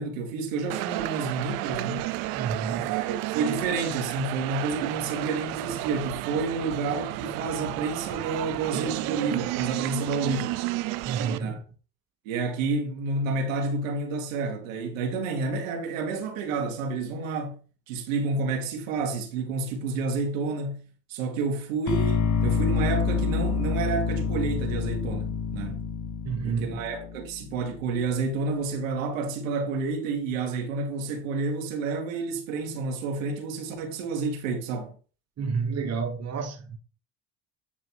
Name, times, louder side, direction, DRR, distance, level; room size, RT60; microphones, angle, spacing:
voice 1, 0.0-2.1 2.7-10.6 11.4-11.6 12.2-17.6 17.9-20.8 21.1-25.9 26.4-35.0, right 4 dB, 85° right, 1.7 m, -30 dB
sound 1, 0.7-11.4, right 17 dB, 65° right, 0.7 m, -32 dB
voice 2, 2.3-2.9 11.0-11.6 26.2-26.8 35.4-36.8, right 5 dB, 40° right, 1.3 m, -30 dB
sound 2, 21.9-27.9, left 6 dB, 50° left, 0.9 m, -27 dB
8.7 x 3.1 x 4.5 m
hypercardioid pair, 70°, 38 cm